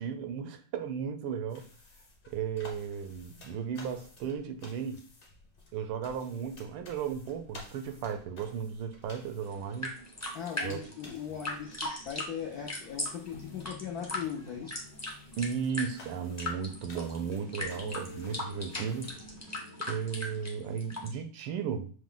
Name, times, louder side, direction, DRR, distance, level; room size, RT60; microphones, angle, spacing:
voice 1, 0.0-1.7 2.3-5.0 5.7-9.9 10.6-10.8 15.4-19.1 19.9-21.9, right 7 dB, 85° right, 1.6 m, -35 dB
sound 1, 1.5-19.4, left 2 dB, 40° left, 0.8 m, -54 dB
sound 2, 9.4-21.1, left 1 dB, 20° left, 0.4 m, -39 dB
voice 2, 10.3-14.8, left 8 dB, 80° left, 0.8 m, -39 dB
sound 3, 13.3-20.5, left 4 dB, 55° left, 1.3 m, -51 dB
6.0 x 2.2 x 3.7 m
omnidirectional pair, 2.3 m